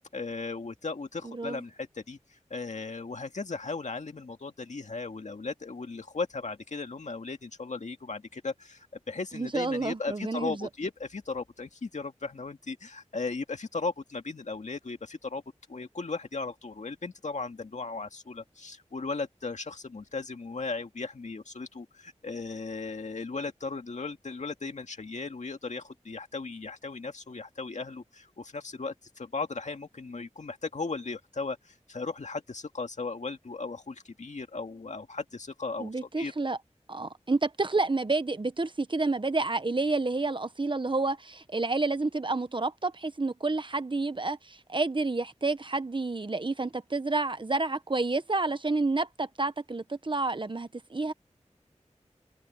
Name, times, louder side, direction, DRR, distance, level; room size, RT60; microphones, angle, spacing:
voice 1, 0.0-15.4 15.7-35.9 36.2-36.3, left 3 dB, 75° left, 2.1 m, -36 dB
voice 2, 1.2-1.6 9.3-10.7 35.8-36.6 36.9-51.1, right 3 dB, 45° right, 1.0 m, -29 dB
wide cardioid pair, 70°, 12 cm